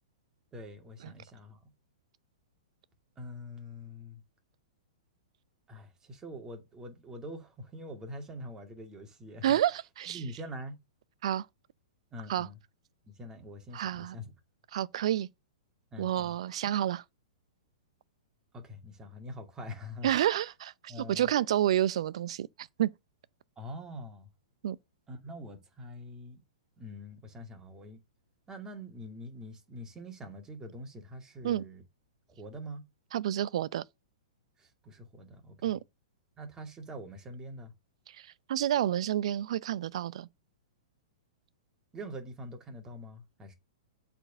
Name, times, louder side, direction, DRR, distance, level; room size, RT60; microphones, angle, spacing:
voice 1, 0.5-1.6 3.2-4.2 5.7-9.6 10.1-10.8 12.1-12.6 13.1-14.3 15.9-16.4 18.5-20.1 20.4-20.5 20.9-21.3 23.6-24.3 25.1-26.4 26.8-28.0 28.5-31.8 32.3-32.8 34.6-35.6 36.4-37.7 41.9-43.5, equal, 15° right, 2.4 m, -44 dB
voice 2, 9.4-10.2 11.2-11.5 12.3-12.5 13.7-14.1 14.7-15.3 16.0-17.0 20.0-22.5 22.8-22.9 24.6-24.8 31.4-31.6 33.1-33.8 35.6-35.8 38.2-40.3, right 11 dB, 60° right, 0.6 m, -29 dB
8.0 x 4.3 x 6.7 m
hypercardioid pair, 115°, 4 cm